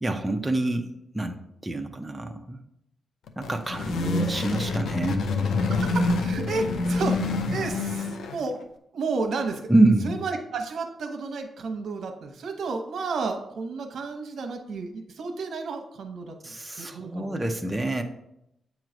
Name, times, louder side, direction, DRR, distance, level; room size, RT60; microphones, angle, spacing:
voice 1, 0.0-1.4 1.6-2.6 3.4-5.3 9.7-10.1 16.4-18.0, right 2 dB, 10° right, 3 dB, 0.5 m, -26 dB
sound 1, 3.3-8.6, left 3 dB, 85° left, 0.6 m, -27 dB
voice 2, 5.6-8.6 8.9-9.6 10.0-17.4, right 4 dB, 70° right, 5 dB, 0.9 m, -32 dB
8.2 x 3.1 x 5.0 m, 0.81 s
wide cardioid pair, 120°, 0 cm